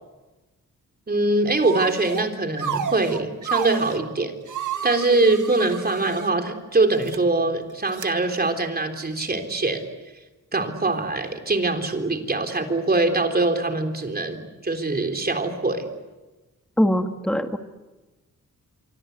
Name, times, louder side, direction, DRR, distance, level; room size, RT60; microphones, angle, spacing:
voice 1, 1.1-4.3 4.8-9.9 10.5-15.9, right 2 dB, 30° right, 5 dB, 3.7 m, -23 dB
sound 1, 1.6-2.3 2.6-4.0 4.5-6.3 6.9-7.2 7.9-8.1, right 7 dB, 70° right, 1.8 m, -31 dB
voice 2, 16.8-17.6, equal, 5° left, 6 dB, 1.6 m, -22 dB
25.0 x 25.0 x 8.2 m, 1.1 s
wide cardioid pair, 110°, 32 cm